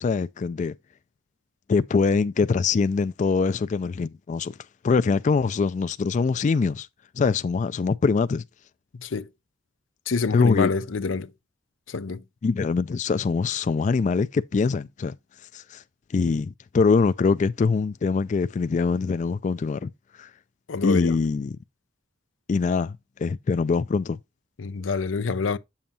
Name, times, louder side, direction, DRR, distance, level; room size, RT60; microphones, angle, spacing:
voice 1, 0.0-0.7 1.7-4.5 4.8-6.9 7.2-8.4 10.3-10.7 12.4-15.2 15.5-15.8 16.1-19.9 20.2-20.3 20.8-21.6 22.5-24.2, left 4 dB, 40° left, 0.3 m, -23 dB
voice 2, 10.1-11.3 11.9-12.2 20.7-21.2 24.6-25.6, left 4 dB, 85° left, 0.6 m, -26 dB
8.6 x 7.2 x 2.7 m
head